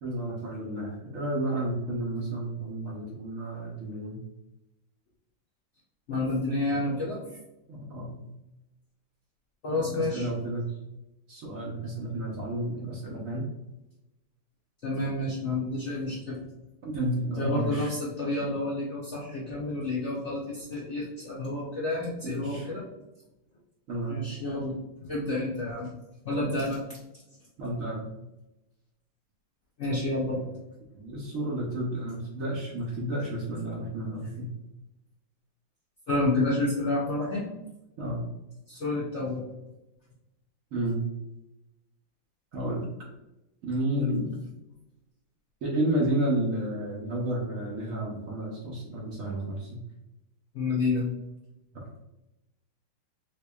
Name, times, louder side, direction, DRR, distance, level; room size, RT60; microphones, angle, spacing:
voice 1, 0.0-4.2 7.7-8.3 9.7-10.7 11.3-13.5 16.8-17.9 22.2-22.7 23.9-24.2 27.6-28.1 30.9-34.5 38.0-38.3 40.7-41.0 42.5-42.9 43.6-44.4 45.6-49.8 51.7-51.9, right 1 dB, 60° right, -3 dB, 0.9 m, -31 dB
voice 2, 6.1-7.2 9.6-10.3 14.8-16.4 17.4-22.8 24.1-25.9 26.2-27.0 29.8-30.5 36.1-37.4 38.7-39.5 43.9-44.2 50.5-51.1, left 2 dB, 60° left, -6 dB, 0.7 m, -29 dB
4.2 x 2.9 x 2.3 m, 0.95 s
omnidirectional pair, 2.0 m